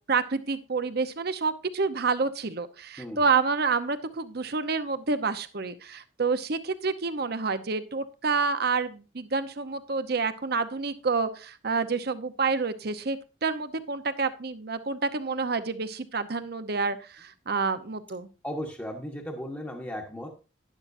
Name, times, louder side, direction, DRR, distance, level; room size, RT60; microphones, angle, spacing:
voice 1, 0.1-18.3, right 4 dB, 60° right, 11 dB, 0.9 m, -28 dB
voice 2, 18.4-20.3, equal, 10° left, 1 dB, 1.2 m, -36 dB
11.5 x 10.5 x 2.7 m, 0.32 s
head